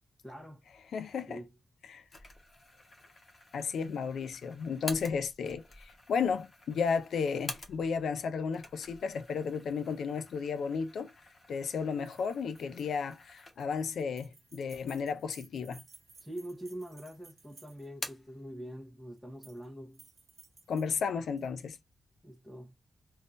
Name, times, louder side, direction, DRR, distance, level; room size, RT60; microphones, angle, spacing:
voice 1, 0.2-0.7 1.3-1.5 16.2-20.0 22.2-22.7, right 1 dB, ahead, 0.9 m, -44 dB
voice 2, 0.9-1.4 1.9-2.0 3.5-11.1 11.5-15.8 20.7-21.8, left 6 dB, 90° left, 0.4 m, -33 dB
sound 1, 2.1-8.1 8.4-13.9 14.3-14.4 15.2-15.9 16.2-17.0 17.3-18.4, left 2 dB, 30° left, 1.0 m, -48 dB
sound 2, 12.0-18.1 19.2-19.7 19.9-21.5, right 4 dB, 55° right, 1.1 m, -58 dB
3.6 x 2.6 x 2.5 m
wide cardioid pair, 140°, 0 cm